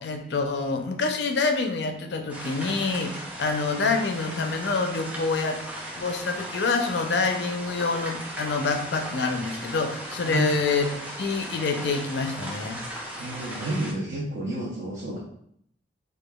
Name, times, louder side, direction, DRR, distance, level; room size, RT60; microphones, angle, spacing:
voice 1, 0.0-5.6 6.0-10.9 11.2-12.8, left 4 dB, 65° left, 5 dB, 0.4 m, -27 dB
sound 1, 2.3-13.9, equal, 10° right, 0.4 m, -37 dB
voice 2, 13.2-15.2, right 1 dB, 70° right, -5 dB, 0.7 m, -30 dB
4.9 x 2.2 x 2.3 m, 0.70 s
head